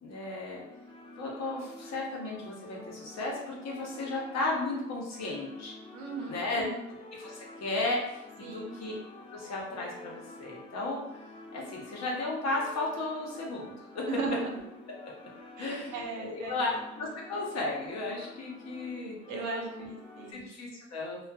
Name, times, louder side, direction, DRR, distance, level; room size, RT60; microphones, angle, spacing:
voice 1, 0.0-0.6 1.2-5.7 6.3-6.6 7.2-8.9 9.3-11.0 11.5-14.0 15.6-16.7 17.0-19.9 20.3-21.2, left 2 dB, 60° left, -3 dB, 0.9 m, -35 dB
sound 1, 0.5-20.3, left 2 dB, 20° left, 0.4 m, -49 dB
voice 2, 5.9-6.9 8.4-8.8 14.1-14.6 15.6-16.6 19.3-20.5, right 3 dB, 80° right, 1 dB, 0.6 m, -37 dB
2.5 x 2.4 x 2.3 m, 0.89 s
cardioid pair, 90°, 30 cm